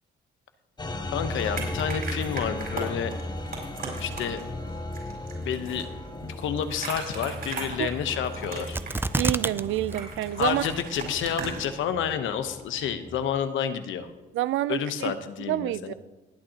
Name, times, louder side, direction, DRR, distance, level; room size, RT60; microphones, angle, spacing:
sound 1, 0.8-13.4, left 2 dB, 20° left, 0.9 m, -37 dB
voice 1, 1.1-3.2 4.0-4.4 5.4-5.9 6.2-8.8 10.4-14.1 14.7-15.9, left 8 dB, 80° left, 1.0 m, -30 dB
sound 2, 1.4-11.7, right 4 dB, 50° right, 4.7 m, -39 dB
sound 3, 8.7-9.6 9.9-10.0 10.6-11.1 11.6-11.7, right 2 dB, 10° right, 0.4 m, -27 dB
voice 2, 9.2-10.6 14.3-15.1 15.5-15.9, right 14 dB, 80° right, 0.4 m, -28 dB
19.5 x 8.8 x 2.9 m
cardioid pair, 90°, 20 cm